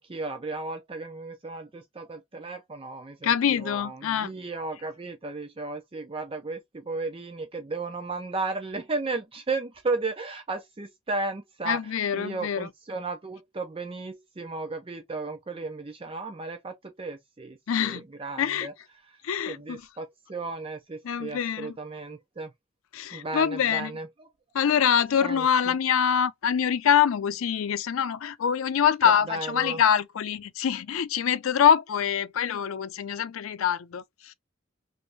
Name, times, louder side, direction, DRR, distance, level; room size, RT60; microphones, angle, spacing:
voice 1, 0.0-18.7 19.5-22.5 23.1-24.3 25.2-25.8 29.3-29.8, right 3 dB, 25° right, 0.5 m, -34 dB
voice 2, 3.2-4.3 11.7-12.7 17.7-18.0 18.4-18.7 19.2-19.8 21.0-21.8 22.9-23.9 24.5-34.3, left 8 dB, 85° left, 0.4 m, -25 dB
3.1 x 2.6 x 3.3 m
head